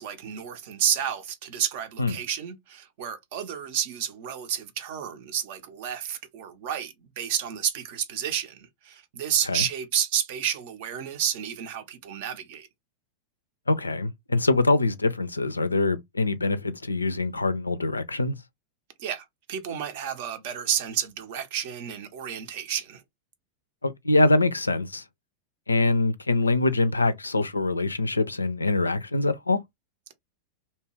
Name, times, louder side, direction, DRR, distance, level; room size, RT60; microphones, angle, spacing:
voice 1, 0.0-12.7 19.0-23.0, right 9 dB, 50° right, 0.6 m, -30 dB
voice 2, 13.7-18.4 23.8-25.0 25.7-29.6, left 2 dB, 80° left, 0.3 m, -24 dB
2.8 x 2.2 x 3.0 m
figure-of-eight pair, 90°, 0 cm